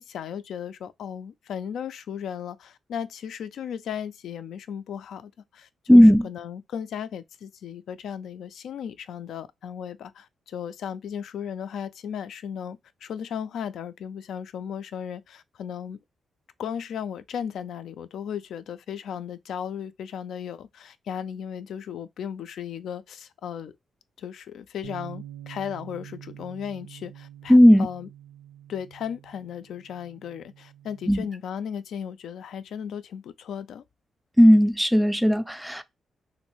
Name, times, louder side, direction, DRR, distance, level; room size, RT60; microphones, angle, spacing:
voice 1, 0.0-16.0 16.6-23.7 24.2-28.1 28.7-33.8, left 8 dB, 80° left, 0.3 m, -36 dB
voice 2, 5.9-6.3 27.5-27.9 31.1-31.2 34.4-35.8, equal, 5° right, 0.3 m, -15 dB
Bass guitar, 24.8-31.1, right 11 dB, 90° right, 0.6 m, -46 dB
3.1 x 2.6 x 2.9 m
cardioid pair, 135°, 0 cm